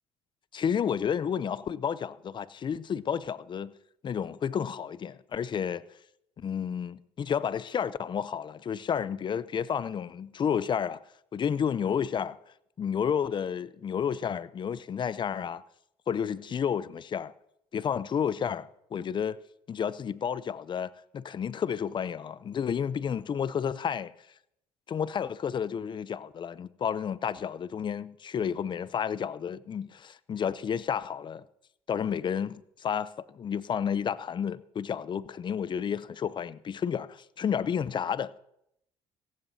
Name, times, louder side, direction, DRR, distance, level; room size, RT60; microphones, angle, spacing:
voice 1, 0.5-3.7 4.0-5.8 6.4-11.0 11.3-12.4 12.8-15.6 16.1-17.3 17.7-19.4 19.7-24.1 24.9-31.4 31.9-38.4, left 7 dB, 40° left, 0.6 m, -31 dB
18.0 x 15.5 x 2.8 m
supercardioid pair, 75°, 12 cm